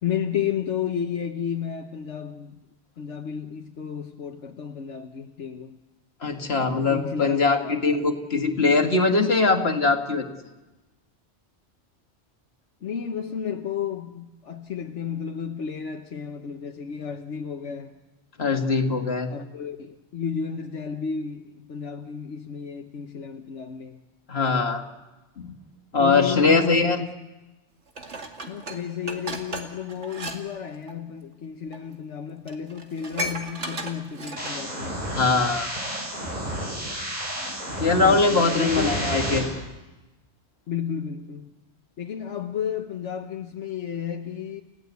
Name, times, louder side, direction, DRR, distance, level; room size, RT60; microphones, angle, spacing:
voice 1, 0.0-2.6 3.0-5.8 6.9-7.4 7.6-7.8 12.8-17.9 19.3-24.0 26.0-27.1 28.5-35.2 38.0-39.0 40.7-41.5 42.0-44.6, left 7 dB, 80° left, 1.4 m, -32 dB
voice 2, 6.2-10.3 18.4-19.3 24.3-24.8 25.4-25.5 25.9-27.0 35.1-35.7 37.8-39.5, left 3 dB, 60° left, 2.1 m, -21 dB
Dishes pots and pans, 28.0-30.4 30.7-30.9 31.7-31.8 32.2-32.3 32.5-34.7 35.1-35.2, right 1 dB, 80° right, 2.5 m, -35 dB
sound 1, 34.4-39.4, right 1 dB, 40° right, 6.9 m, -31 dB
30.0 x 16.5 x 8.2 m
omnidirectional pair, 1.2 m